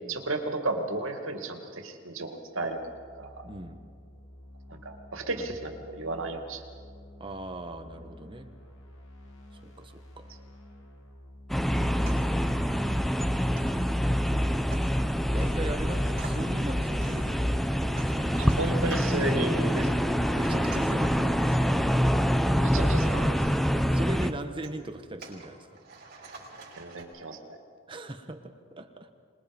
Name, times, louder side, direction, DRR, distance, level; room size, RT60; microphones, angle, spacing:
voice 1, 0.1-2.8 3.2-3.3 4.7-6.6 18.4-19.9 22.6-23.4 26.8-27.6, right 2 dB, 85° right, 5 dB, 2.4 m, -33 dB
sound 1, 2.4-14.2, equal, 75° left, 2.9 m, -51 dB
voice 2, 3.4-3.8 5.4-5.5 7.2-8.5 9.5-10.4 15.3-18.6 20.3-21.8 23.9-25.8 27.9-29.2, right 1 dB, 25° right, 6 dB, 1.4 m, -40 dB
sound 2, 11.5-24.3, equal, ahead, 0.7 m, -26 dB
sound 3, 12.0-27.0, right 3 dB, 50° right, 5.1 m, -52 dB
25.5 x 21.0 x 5.4 m, 2.2 s
head